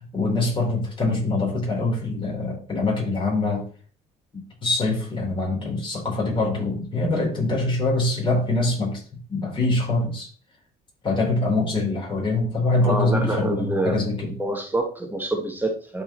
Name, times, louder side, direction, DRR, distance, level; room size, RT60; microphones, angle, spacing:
voice 1, 0.1-3.7 4.6-9.0 9.3-10.3 11.0-14.3, left 2 dB, 30° left, -2 dB, 4.2 m, -24 dB
voice 2, 12.8-16.0, right 1 dB, 10° right, 3 dB, 1.3 m, -27 dB
12.0 x 4.9 x 3.1 m, 0.41 s
cardioid pair, 110°, 17 cm